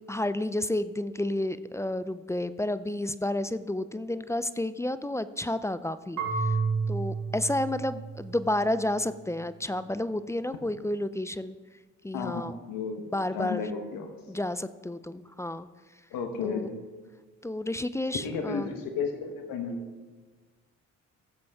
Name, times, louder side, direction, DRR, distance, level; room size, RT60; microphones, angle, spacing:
voice 1, 0.1-6.6 6.9-11.6 12.0-12.5 13.1-13.7 14.3-15.7 16.4-16.7 17.4-18.7, left 1 dB, 10° left, 14 dB, 0.4 m, -31 dB
Marimba xylophone / Wood, 6.2-9.0, right 4 dB, 70° right, 2.5 m, -31 dB
voice 2, 12.1-13.0 13.3-14.1 16.1-16.7 18.2-19.8, left 5 dB, 85° left, 5 dB, 1.1 m, -33 dB
15.0 x 7.6 x 3.5 m, 1.4 s
supercardioid pair, 60°, 33 cm